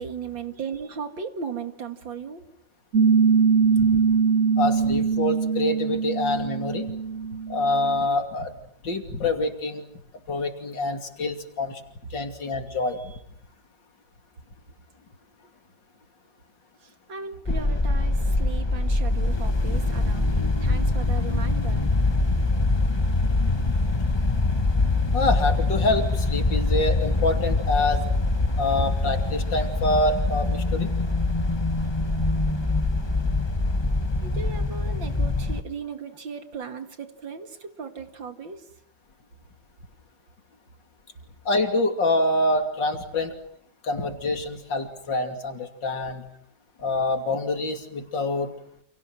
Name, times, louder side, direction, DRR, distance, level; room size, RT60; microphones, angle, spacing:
voice 1, 0.0-2.5 12.7-13.2 16.8-21.9 34.2-38.7, right 6 dB, 80° right, 7 dB, 2.9 m, -37 dB
Piano, 2.9-8.1, right 6 dB, 45° right, 1.7 m, -22 dB
voice 2, 4.6-6.9 7.5-8.5 8.8-9.8 10.3-11.8 12.1-13.0 22.3-22.4 25.1-28.1 28.6-30.9 41.5-43.3 43.8-46.2 46.8-48.5, left 2 dB, 75° left, 5 dB, 3.4 m, -26 dB
sound 1, 17.5-35.6, left 2 dB, 20° left, 1.0 m, -24 dB
30.0 x 28.0 x 6.2 m, 0.70 s
omnidirectional pair, 2.0 m